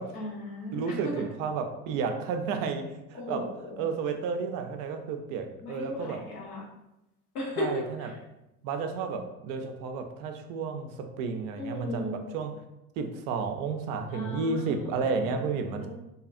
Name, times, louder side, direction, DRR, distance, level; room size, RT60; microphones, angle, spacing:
voice 1, 0.1-1.2 3.1-3.8 5.6-6.6 7.3-8.1 11.5-12.2 14.1-15.5 15.8-15.9, left 1 dB, 90° left, -3 dB, 1.0 m, -36 dB
voice 2, 0.7-3.5 3.8-6.2 7.6-8.1 8.6-12.6 13.0-15.9, right 5 dB, 50° right, 5 dB, 0.4 m, -32 dB
2.7 x 2.3 x 2.5 m, 0.90 s
hypercardioid pair, 80°, 44 cm